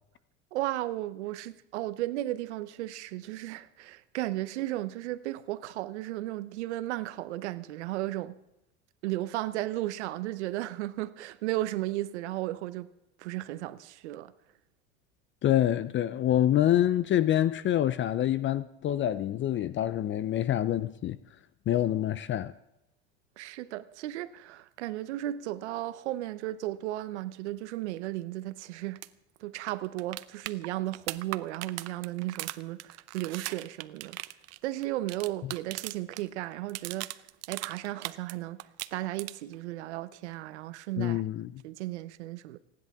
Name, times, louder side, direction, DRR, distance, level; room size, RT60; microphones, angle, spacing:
voice 1, 0.5-8.4 9.0-12.9 13.2-14.3 23.4-29.0 29.4-34.2 34.6-37.1 37.5-38.6 38.9-41.2 41.6-42.6, right 16 dB, 85° right, 0.9 m, -35 dB
voice 2, 15.4-21.2 21.7-22.5 35.4-35.5 41.0-41.5, left 12 dB, 35° left, 0.6 m, -26 dB
sound 1, 28.9-29.1 29.4-29.5 29.7-36.2 36.5-38.3 38.6-39.5 41.6-41.7, right 17 dB, 50° right, 0.7 m, -39 dB
29.5 x 11.0 x 3.6 m
supercardioid pair, 95°, 33 cm